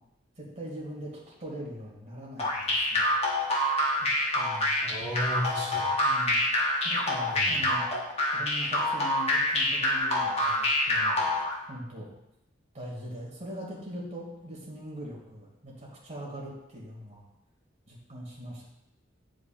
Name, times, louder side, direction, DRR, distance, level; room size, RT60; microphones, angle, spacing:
voice 1, 0.4-3.1 4.0-4.1 4.3-4.7 6.0-6.4 6.8-7.9 8.3-11.3 11.7-12.1 12.7-17.2 17.9-18.6, equal, 35° right, -5 dB, 2.3 m, -41 dB
sound 1, 2.4-11.5, left 1 dB, 35° left, 1.1 m, -26 dB
voice 2, 4.8-5.9 7.3-7.6, equal, 15° right, -11 dB, 1.4 m, -33 dB
9.6 x 5.0 x 2.5 m, 0.86 s
head